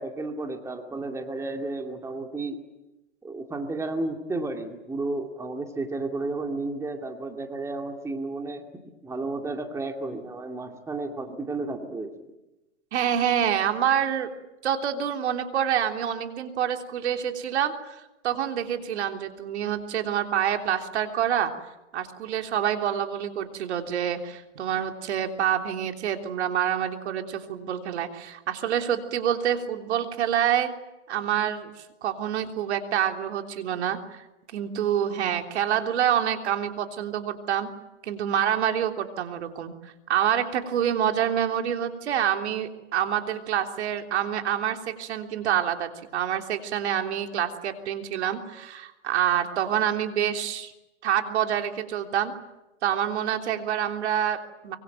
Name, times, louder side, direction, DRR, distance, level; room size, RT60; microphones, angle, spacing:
voice 1, 0.0-2.6 3.2-12.3, right 2 dB, 10° right, 4 dB, 2.3 m, -32 dB
voice 2, 12.9-14.3 14.6-21.5 21.9-30.7 31.1-31.7 32.0-34.2 34.5-37.7 38.0-50.7 51.0-52.3 52.8-54.8, right 9 dB, 65° right, 5 dB, 3.5 m, -27 dB
25.0 x 23.0 x 9.2 m, 0.99 s
hypercardioid pair, 135°, 35 cm